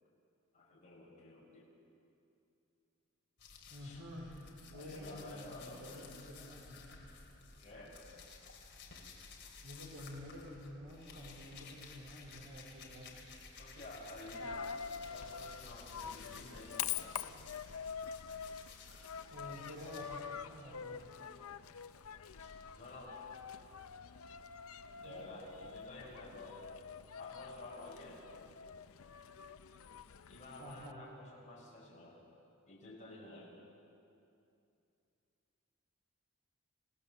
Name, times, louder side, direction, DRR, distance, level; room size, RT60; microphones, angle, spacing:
voice 1, 0.5-1.7 3.8-4.0 4.7-6.1 7.6-8.0 13.6-17.2 22.4-23.1 25.0-26.6 27.2-28.2 30.3-32.2 32.7-33.5, left 2 dB, 35° left, -5 dB, 5.4 m, -52 dB
sound 1, 3.4-14.3 14.6-20.0, left 4 dB, 55° left, 3.2 m, -55 dB
voice 2, 3.7-4.4 4.7-7.0 9.6-13.2 19.3-21.1 25.0-25.2 30.6-31.0, equal, 75° right, -5 dB, 3.9 m, -50 dB
Coin (dropping), 14.3-30.9, left 7 dB, 70° left, 0.7 m, -46 dB
27.5 x 17.0 x 7.0 m, 2.6 s
head